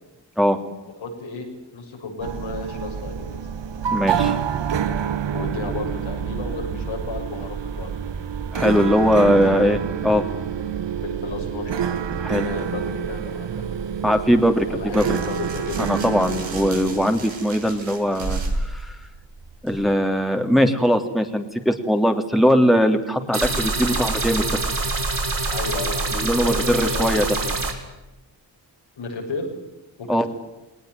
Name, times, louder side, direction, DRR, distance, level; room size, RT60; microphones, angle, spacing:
voice 1, 1.0-3.4 5.3-7.9 9.1-9.3 11.0-11.7 12.4-13.6 14.6-16.0 25.5-27.6 29.0-29.5 30.0-30.3, left 3 dB, 90° left, 0 dB, 7.3 m, -33 dB
sound 1, 2.2-17.1, right 7 dB, 70° right, 1.6 m, -27 dB
voice 2, 3.9-4.4 8.5-10.2 12.2-12.5 14.0-15.1 15.8-19.0 19.6-24.6 26.1-27.2 30.1-30.3, equal, ahead, 4 dB, 3.3 m, -20 dB
sound 2, 13.6-19.9, right 2 dB, 85° right, 7.5 m, -33 dB
sound 3, 23.3-27.7, right 3 dB, 45° right, 6.4 m, -25 dB
20.0 x 19.5 x 9.5 m, 0.99 s
cardioid pair, 60°, 45 cm